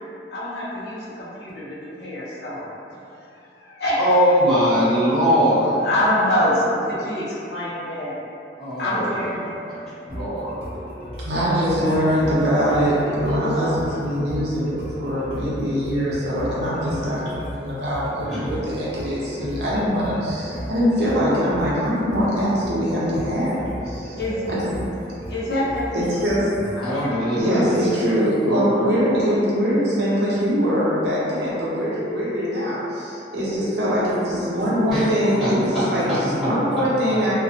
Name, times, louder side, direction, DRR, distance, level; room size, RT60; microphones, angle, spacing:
voice 1, 0.3-2.6 3.6-4.0 5.8-8.1 8.8-9.4 11.8-14.1 24.2-24.5 25.3-26.5 26.8-27.3, left 1 dB, 65° left, -8 dB, 0.6 m, -26 dB
voice 2, 3.9-5.8 8.6-9.8 10.0-10.7 18.3-18.6 26.8-28.1 28.4-29.3 34.9-35.1 35.3-37.2, equal, ahead, -16 dB, 1.1 m, -23 dB
sound 1, 10.1-26.8, equal, 30° right, 0.9 m, -36 dB
voice 3, 11.2-24.2 24.5-24.7 25.9-26.8 27.3-37.3, equal, 70° right, -8 dB, 0.7 m, -22 dB
2.4 x 2.2 x 2.6 m, 2.7 s
head